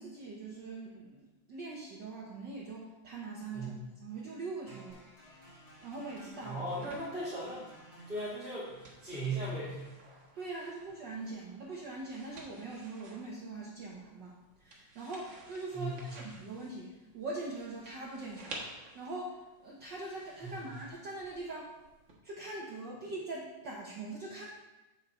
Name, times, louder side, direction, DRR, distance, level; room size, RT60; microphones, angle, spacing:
voice 1, 0.0-3.7 4.0-5.0 5.8-6.6 10.3-14.3 14.6-21.7 22.2-24.5, right 2 dB, 70° right, -3 dB, 1.0 m, -42 dB
sound 1, 4.7-12.7, right 1 dB, 25° left, 0.7 m, -58 dB
sound 2, 4.9-22.1, right 2 dB, 50° right, 0.9 m, -54 dB
voice 2, 6.4-7.7 8.1-8.7 9.0-9.8 15.7-16.1 20.4-20.7, right 2 dB, ahead, -12 dB, 2.8 m, -37 dB
8.1 x 6.7 x 4.2 m, 1.0 s
omnidirectional pair, 3.3 m